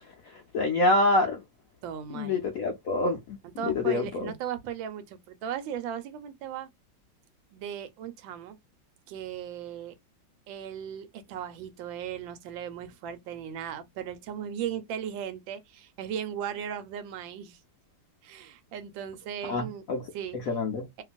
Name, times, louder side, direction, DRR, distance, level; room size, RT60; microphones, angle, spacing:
voice 1, 0.3-1.4 2.1-4.3 19.4-20.0 20.3-20.9, left 2 dB, 75° left, 0.8 m, -27 dB
voice 2, 1.8-2.4 3.6-6.7 7.5-8.6 9.1-9.9 10.5-17.6 18.2-19.8 20.1-20.4, right 9 dB, 85° right, 1.4 m, -37 dB
2.9 x 2.5 x 2.3 m
omnidirectional pair, 2.1 m